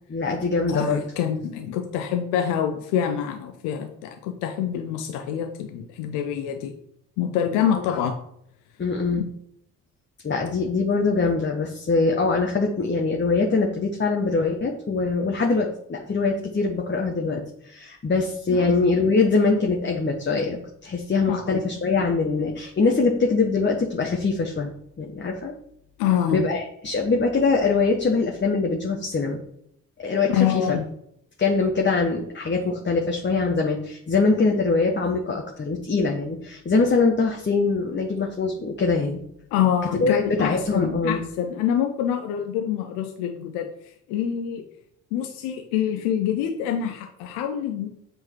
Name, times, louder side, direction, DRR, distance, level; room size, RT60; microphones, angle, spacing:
voice 1, 0.1-1.0 7.7-7.8 8.8-9.2 10.2-24.7 25.0-25.5 26.3-29.4 30.0-30.8 31.4-39.2 40.0-41.2, left 4 dB, 25° left, 1 dB, 1.2 m, -23 dB
voice 2, 0.7-6.7 7.2-8.2 9.1-9.2 18.5-18.7 21.3-21.6 26.0-26.4 30.3-30.9 39.5-43.7 44.1-44.6 45.1-47.9, left 9 dB, 75° left, 5 dB, 0.8 m, -26 dB
7.8 x 3.8 x 4.6 m, 0.73 s
hypercardioid pair, 55°, 40 cm